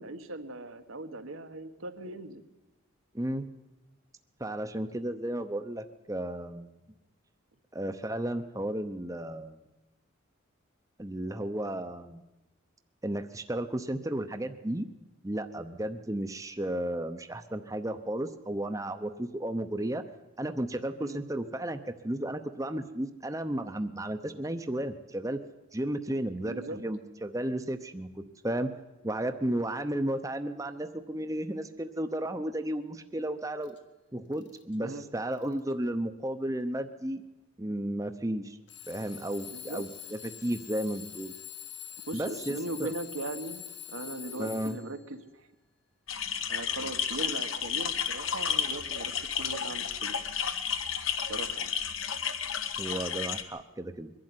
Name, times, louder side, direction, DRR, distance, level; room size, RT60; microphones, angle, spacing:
voice 1, 0.0-2.4 21.0-21.2 26.4-26.8 34.8-35.1 39.5-39.8 42.1-45.2 46.5-50.2 51.3-51.7, right 2 dB, 85° right, 7 dB, 1.6 m, -39 dB
voice 2, 3.1-3.5 4.4-6.7 7.7-9.6 11.0-12.2 13.0-14.9 15.2-20.0 20.4-25.4 25.7-28.7 29.0-33.8 34.1-37.2 37.6-38.6 38.9-41.3 42.1-42.9 44.4-44.8 52.8-54.1, right 1 dB, 15° right, 8 dB, 0.8 m, -33 dB
Alarm / Clock, 33.6-33.8 34.3-34.8 35.3-35.7 36.6-36.7 38.7-45.1, left 12 dB, 55° left, 1.6 m, -45 dB
sound 1, 46.1-53.4, left 7 dB, 80° left, 1.4 m, -32 dB
23.0 x 11.5 x 9.7 m, 1.0 s
head